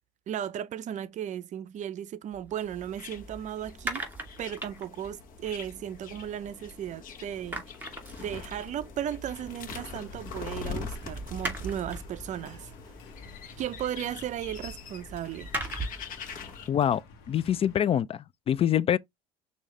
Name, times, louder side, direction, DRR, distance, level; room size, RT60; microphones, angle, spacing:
voice 1, 0.3-4.1 4.4-7.6 8.2-12.7 13.6-15.5, right 10 dB, 45° right, 0.5 m, -35 dB
sound 1, 2.3-7.0 7.2-16.1, right 2 dB, 10° right, 2.5 m, -41 dB
sound 2, 2.7-16.7, left 6 dB, 50° left, 1.3 m, -44 dB
sound 3, 9.3-17.8, left 3 dB, 65° left, 1.4 m, -51 dB
voice 2, 16.7-17.0 17.3-19.0, left 10 dB, 35° left, 0.3 m, -25 dB
6.2 x 2.8 x 3.1 m
hypercardioid pair, 75°, 18 cm